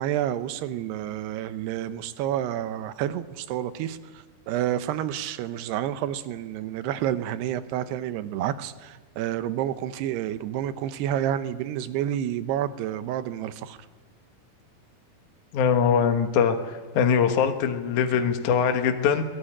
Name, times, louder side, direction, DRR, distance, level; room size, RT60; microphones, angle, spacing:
voice 1, 0.0-13.8, right 11 dB, 80° right, 12 dB, 2.9 m, -29 dB
voice 2, 15.5-19.3, left 7 dB, 60° left, 6 dB, 2.2 m, -22 dB
22.0 x 19.5 x 9.9 m, 1.3 s
omnidirectional pair, 4.9 m